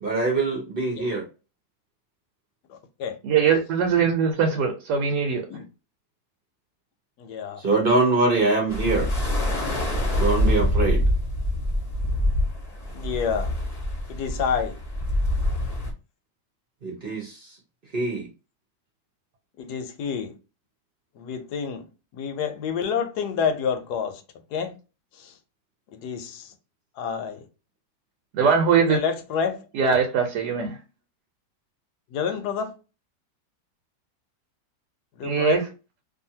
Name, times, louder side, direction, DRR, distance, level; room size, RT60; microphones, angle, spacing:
voice 1, 0.0-1.2 7.6-9.1 10.1-11.0 16.8-17.4 17.9-18.3, right 3 dB, 45° right, 0.9 m, -23 dB
voice 2, 2.7-3.2 5.5-5.6 7.2-7.6 12.9-13.5 14.1-14.8 19.6-20.3 21.2-21.8 22.1-24.2 24.5-24.8 25.2-25.3 25.9-26.5 27.0-27.4 28.9-29.7 32.1-32.7 35.2-35.6, left 7 dB, 80° left, 1.2 m, -28 dB
voice 3, 3.2-5.4 28.4-29.0 29.7-30.7 35.2-35.6, right 6 dB, 85° right, 1.3 m, -21 dB
sound 1, 8.7-15.9, left 1 dB, 30° left, 0.8 m, -25 dB
2.7 x 2.6 x 2.7 m
omnidirectional pair, 1.8 m